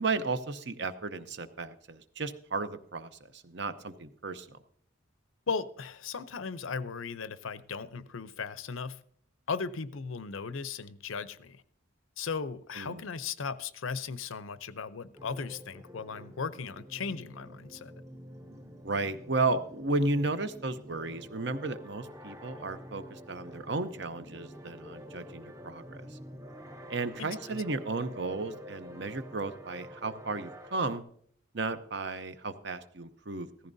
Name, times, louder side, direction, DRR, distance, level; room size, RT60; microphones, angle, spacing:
voice 1, 0.0-4.6 12.7-13.0 18.8-26.2 26.9-31.0 31.5-33.5, right 3 dB, 55° right, 0.8 m, -34 dB
voice 2, 5.5-9.0 9.5-11.6 12.2-17.9 27.2-27.6, left 5 dB, 80° left, 0.6 m, -37 dB
sound 1, 15.1-31.0, equal, 15° right, 0.7 m, -48 dB
15.5 x 14.0 x 2.7 m
head